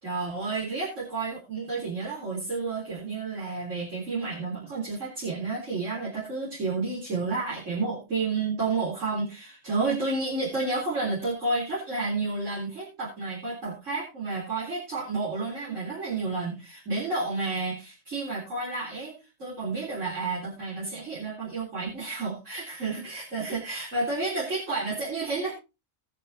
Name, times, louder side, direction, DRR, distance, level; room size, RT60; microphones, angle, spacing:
voice 1, 0.0-19.1 19.4-25.5, right 3 dB, 75° right, -6 dB, 4.1 m, -31 dB
20.0 x 7.1 x 2.8 m, 0.27 s
omnidirectional pair, 1.3 m